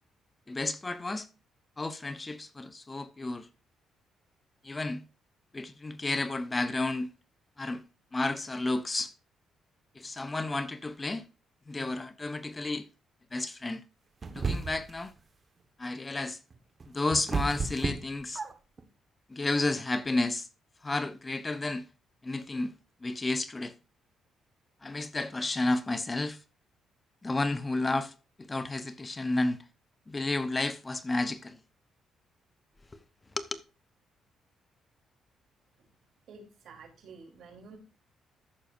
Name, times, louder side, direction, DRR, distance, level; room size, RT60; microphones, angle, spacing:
voice 1, 0.5-1.3 1.8-3.5 4.6-5.0 5.5-7.1 7.6-7.8 8.1-9.1 10.0-11.2 11.7-12.9 13.3-13.8 14.3-15.1 15.8-16.4 16.9-18.4 19.3-20.5 20.8-21.9 22.2-22.7 23.0-23.7 24.8-26.4 27.2-28.1 28.5-29.6 30.1-31.6 33.4-33.6, left 2 dB, 25° left, 0.7 m, -31 dB
sound 1, 14.2-15.0 16.5-18.8, right 4 dB, 35° right, 1.2 m, -33 dB
voice 2, 36.3-37.8, right 4 dB, 70° right, 3.3 m, -50 dB
14.0 x 6.5 x 2.5 m
cardioid pair, 90°, 0 cm